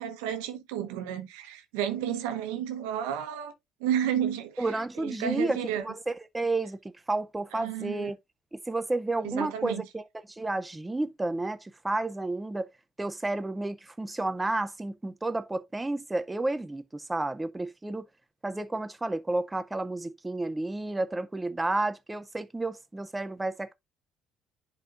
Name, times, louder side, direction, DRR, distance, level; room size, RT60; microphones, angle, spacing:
voice 1, 0.0-3.5 3.8-4.7 5.0-5.8 7.5-8.1 9.2-9.8, right 10 dB, 90° right, 1.0 m, -31 dB
voice 2, 4.6-6.8 7.1-8.2 8.5-12.7 13.0-18.1 18.4-23.7, right 2 dB, 15° right, 0.5 m, -31 dB
10.5 x 4.4 x 2.5 m
supercardioid pair, 75°, 0 cm